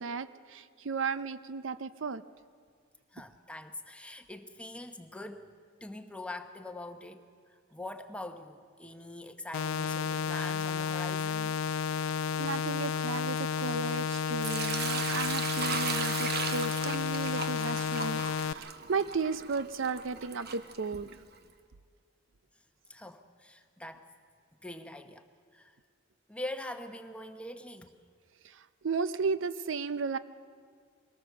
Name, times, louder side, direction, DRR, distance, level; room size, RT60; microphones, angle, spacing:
voice 1, 0.0-2.2 12.4-21.2 28.4-30.2, right 4 dB, 65° right, 14 dB, 0.5 m, -34 dB
voice 2, 3.1-11.6 22.9-24.1 24.6-25.3 25.5-25.8 26.3-27.9, left 1 dB, 5° left, 7 dB, 1.0 m, -43 dB
sound 1, 9.5-18.5, left 6 dB, 80° left, 0.4 m, -32 dB
Sink (filling or washing) / Liquid, 14.4-21.3, right 6 dB, 50° right, 1.1 m, -37 dB
22.5 x 18.0 x 6.9 m, 2.1 s
head